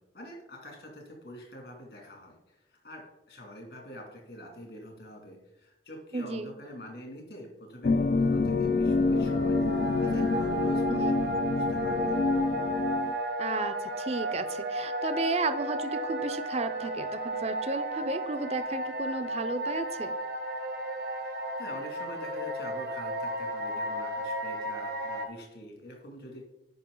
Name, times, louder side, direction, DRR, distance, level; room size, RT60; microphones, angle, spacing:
voice 1, 0.0-9.8 10.0-12.2 21.3-26.4, equal, 70° left, 0 dB, 2.5 m, -46 dB
voice 2, 6.1-6.5 10.9-11.2 13.4-20.1, right 3 dB, 35° right, 11 dB, 0.5 m, -33 dB
sound 1, 7.8-13.1, left 3 dB, 55° left, 0.3 m, -27 dB
sound 2, 8.8-25.3, right 1 dB, 70° right, 1.0 m, -33 dB
9.2 x 5.7 x 3.8 m, 0.90 s
head